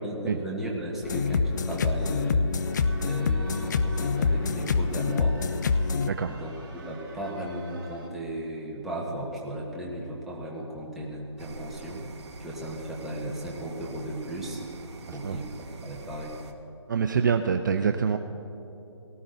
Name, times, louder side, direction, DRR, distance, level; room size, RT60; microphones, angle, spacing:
voice 1, 0.0-2.7 3.0-5.4 6.3-12.0 12.4-14.6 15.1-16.3, right 1 dB, ahead, -4 dB, 1.2 m, -36 dB
sound 1, 1.0-6.1, left 4 dB, 40° left, 0.5 m, -26 dB
sound 2, 2.5-8.1, right 3 dB, 20° right, 3.4 m, -48 dB
sound 3, 11.4-16.5, right 3 dB, 65° right, 1.3 m, -44 dB
voice 2, 16.9-18.2, right 6 dB, 40° right, 7 dB, 0.5 m, -25 dB
18.5 x 18.0 x 2.6 m, 2.9 s
hypercardioid pair, 160°, 16 cm